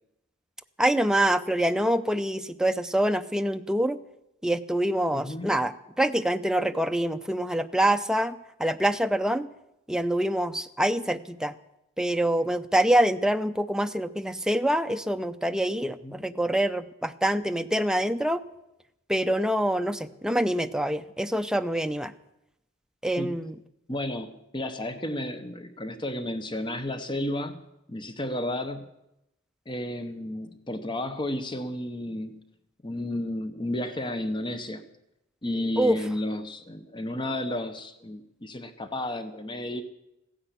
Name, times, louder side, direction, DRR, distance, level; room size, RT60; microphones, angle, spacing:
voice 1, 0.8-4.0 4.4-9.5 9.9-11.5 12.0-18.4 19.1-22.1 23.0-23.6 35.8-36.0, right 1 dB, 5° right, 8 dB, 0.5 m, -25 dB
voice 2, 5.1-5.5 16.0-16.2 23.2-23.3 23.9-27.6 27.9-28.9 29.7-32.4 32.8-34.8 35.4-39.8, left 1 dB, 25° left, 9 dB, 0.9 m, -32 dB
15.5 x 10.0 x 8.2 m, 0.87 s
head